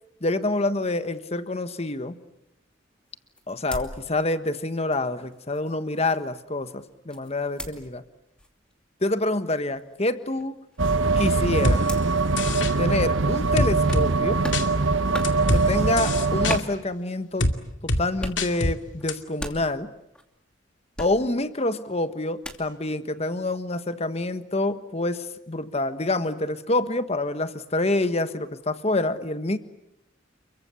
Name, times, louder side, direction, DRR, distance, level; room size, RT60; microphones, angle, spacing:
voice 1, 0.2-2.2 3.5-8.0 9.0-10.6 11.2-11.9 12.8-14.4 15.5-17.5 17.8-19.9 21.0-29.6, left 2 dB, 35° left, 11 dB, 1.4 m, -27 dB
sound 1, 3.0-4.6 4.9-7.9 8.4-8.7 9.1-9.3 9.6-13.2 13.8-14.1 14.4-14.7 15.0-15.4 16.5-17.4 18.1-18.5 18.8-20.2 21.0-21.4 22.4-22.7, equal, 5° left, 2.7 m, -39 dB
sound 2, 10.8-16.6, right 3 dB, 85° right, 1.2 m, -22 dB
sound 3, 11.6-11.8 12.4-12.7 13.6-14.1 14.5-14.7 15.2-15.6 16.0-16.6 17.4-17.5 17.9-18.0 18.4-18.7 19.1-19.2, left 1 dB, 75° left, 2.4 m, -24 dB
29.5 x 23.0 x 8.4 m, 0.81 s
head